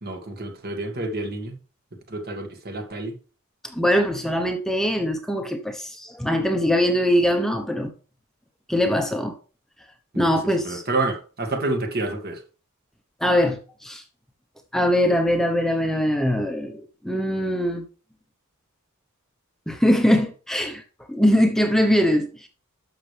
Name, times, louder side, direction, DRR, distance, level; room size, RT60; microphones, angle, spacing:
voice 1, 0.0-1.5 2.1-3.1 10.1-10.4 10.6-12.4, right 2 dB, 45° right, 1.9 m, -28 dB
voice 2, 3.7-7.9 8.7-9.3 10.2-10.8 13.2-14.0 14.7-17.8 19.7-20.8 21.1-22.5, equal, ahead, 0.9 m, -22 dB
11.5 x 6.7 x 3.3 m
head